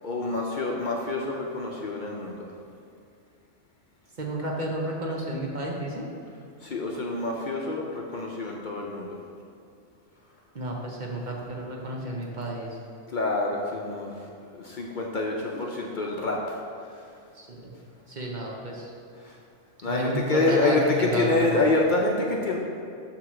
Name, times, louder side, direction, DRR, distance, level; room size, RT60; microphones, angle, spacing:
voice 1, 0.0-2.5 6.6-9.1 13.1-14.2 14.5-17.0 19.2-19.4 19.8-22.6, left 2 dB, 50° left, -1 dB, 0.7 m, -27 dB
voice 2, 4.2-6.1 10.5-12.8 17.3-17.8 18.1-18.9 19.8-21.6, right 1 dB, 45° right, -1 dB, 0.9 m, -31 dB
7.8 x 3.0 x 6.2 m, 2.4 s
omnidirectional pair, 1.2 m